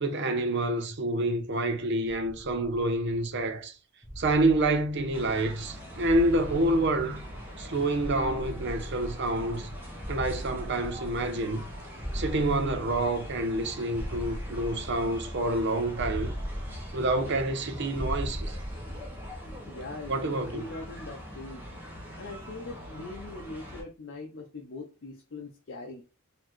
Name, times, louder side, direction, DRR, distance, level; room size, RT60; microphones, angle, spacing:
voice 1, 0.0-3.7 4.2-7.2 7.6-9.7 10.1-11.6 12.1-16.3 16.9-18.6 20.1-20.6, right 2 dB, 55° right, 0.7 m, -28 dB
sound 1, 2.0-3.4 4.0-5.6 6.0-7.7 8.0-9.6 10.0-11.6 12.0-13.6 13.9-15.5 15.9-17.6 17.9-19.6, equal, 20° left, 0.8 m, -39 dB
sound 2, 5.1-23.8, equal, 10° right, 1.2 m, -43 dB
voice 2, 19.7-21.7 22.2-26.1, left 2 dB, 60° left, 0.6 m, -41 dB
4.0 x 2.8 x 3.1 m
head